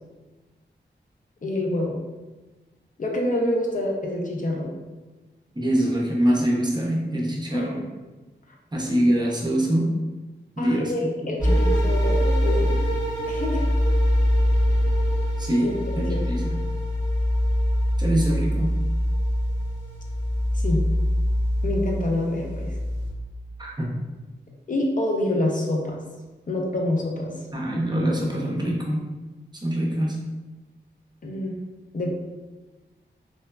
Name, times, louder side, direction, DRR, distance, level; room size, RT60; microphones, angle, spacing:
voice 1, 1.4-2.0 3.0-4.8 7.5-7.7 10.6-12.8 13.3-13.7 15.6-16.4 20.5-20.9 21.6-22.8 24.7-26.0 26.5-27.3 31.2-31.6 31.9-32.1, left 1 dB, 45° left, -1 dB, 0.4 m, -27 dB
voice 2, 5.5-7.8 8.7-9.9 10.6-11.6 15.4-16.6 18.0-18.7 23.6-23.9 27.5-29.0 29.6-30.2, right 1 dB, 20° right, -4 dB, 0.6 m, -24 dB
sound 1, 11.4-23.1, equal, 75° left, 1.2 m, -23 dB
3.2 x 2.0 x 2.2 m, 1.2 s
cardioid pair, 65°, 19 cm